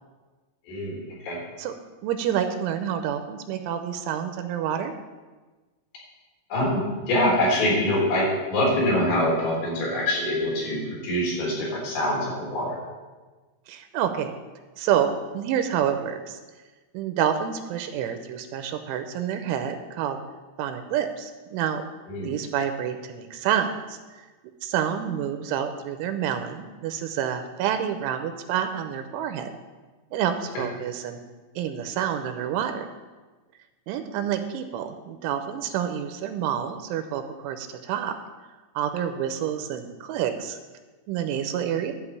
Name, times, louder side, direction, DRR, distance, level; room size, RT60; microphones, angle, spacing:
voice 1, 0.7-1.0 1.2-1.4 6.5-6.8 7.1-12.8 22.1-22.3 30.6-30.7, left 1 dB, 60° left, -4 dB, 5.9 m, -24 dB
voice 2, 2.0-4.9 13.7-14.3 14.8-16.4 16.9-20.2 20.6-21.8 22.2-24.2 24.6-29.5 30.1-31.2 31.6-32.9 33.9-38.1 38.8-40.6 41.1-41.9, right 9 dB, 85° right, 8 dB, 3.1 m, -28 dB
12.0 x 5.7 x 8.4 m, 1.3 s
omnidirectional pair, 5.6 m